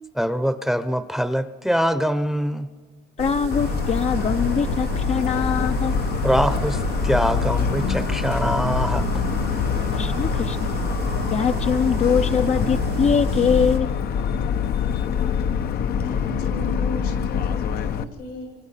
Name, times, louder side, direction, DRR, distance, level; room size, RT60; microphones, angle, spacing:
voice 1, 0.2-2.7 6.2-6.8 7.0-9.0, equal, ahead, 12 dB, 0.8 m, -23 dB
voice 2, 3.2-5.9 9.9-10.7 11.3-13.9, left 7 dB, 40° left, 8 dB, 0.7 m, -23 dB
sound 1, 3.2-13.8, right 8 dB, 70° right, 1.2 m, -31 dB
Motor vehicle (road) / Siren, 3.5-18.0, left 7 dB, 65° left, 1.0 m, -25 dB
voice 3, 16.0-18.6, left 1 dB, 80° left, 2 dB, 7.3 m, -36 dB
28.5 x 25.5 x 5.8 m, 1.5 s
cardioid pair, 110°, 17 cm